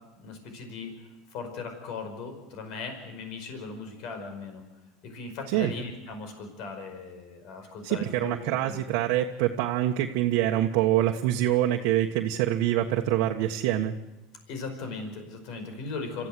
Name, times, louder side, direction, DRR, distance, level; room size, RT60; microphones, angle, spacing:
voice 1, 0.2-0.9 1.3-4.6 5.0-8.8 14.5-16.3, left 4 dB, 60° left, 6 dB, 5.1 m, -38 dB
voice 2, 7.8-14.0, right 13 dB, 70° right, 1 dB, 1.4 m, -25 dB
27.0 x 14.5 x 7.7 m, 1.1 s
supercardioid pair, 105°, 0 cm